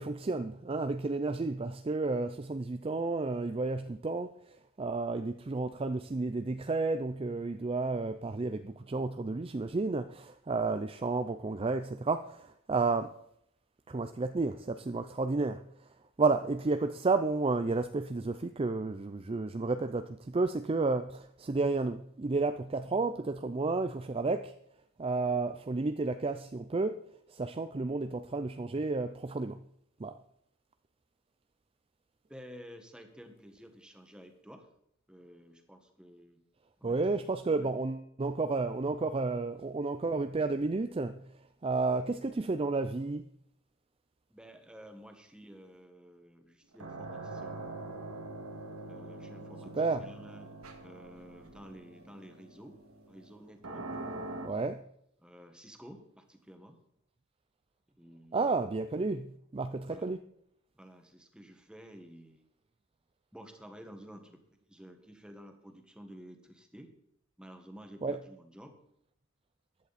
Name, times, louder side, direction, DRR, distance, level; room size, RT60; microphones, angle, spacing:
voice 1, 0.0-13.1 13.9-15.7 16.2-24.5 25.0-27.0 27.3-29.6 30.0-30.2 36.8-41.3 41.6-43.3 49.7-50.1 54.4-54.8 58.3-60.2 68.0-68.2, right 3 dB, 25° right, 0.4 m, -31 dB
voice 2, 32.3-34.7 35.1-36.4 36.8-37.7 44.3-47.6 48.9-49.7 50.0-50.5 50.8-52.8 53.1-53.9 55.2-56.8 58.0-58.6 59.8-60.1 60.7-62.4 63.3-66.9 67.4-68.8, equal, 5° right, 1.5 m, -52 dB
sound 1, 46.7-54.5, right 2 dB, 80° right, 2.1 m, -44 dB
15.0 x 11.0 x 4.2 m
head